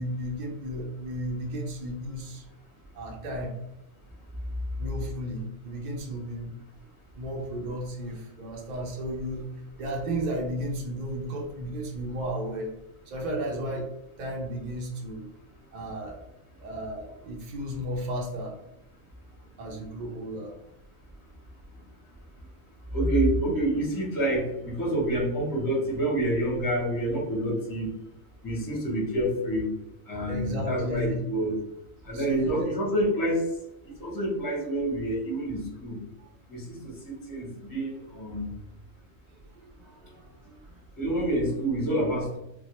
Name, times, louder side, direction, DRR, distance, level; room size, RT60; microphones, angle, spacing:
voice 1, 0.0-2.4 2.9-3.5 4.8-6.5 7.2-9.5 9.8-12.7 13.1-13.9 14.2-15.2 15.7-16.2 16.6-18.5 19.6-20.5 30.3-31.2 32.1-32.7 36.2-36.3 39.6-40.5, equal, 65° right, 0 dB, 0.4 m, -34 dB
voice 2, 22.9-27.9 28.4-29.7 30.1-31.5 32.1-33.5 34.0-36.0 36.5-38.5 41.0-42.4, right 1 dB, 20° left, -3 dB, 0.6 m, -27 dB
2.2 x 2.0 x 2.9 m, 0.86 s
omnidirectional pair, 1.4 m